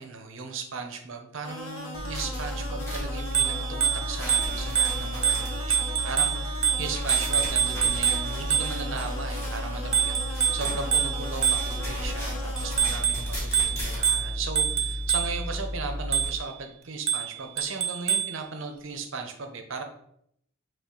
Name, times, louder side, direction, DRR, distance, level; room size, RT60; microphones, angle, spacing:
voice 1, 0.0-19.8, right 4 dB, 60° right, 5 dB, 0.7 m, -37 dB
sound 1, 1.4-12.9, left 1 dB, 70° left, 1.0 m, -39 dB
sound 2, 1.9-16.3, equal, 10° left, 1.5 m, -33 dB
Bicycle bell, 3.2-9.0 9.9-12.0 12.6-15.5 16.1-16.5 17.1-18.4, right 8 dB, 30° right, 0.3 m, -27 dB
5.8 x 2.4 x 3.8 m, 0.72 s
head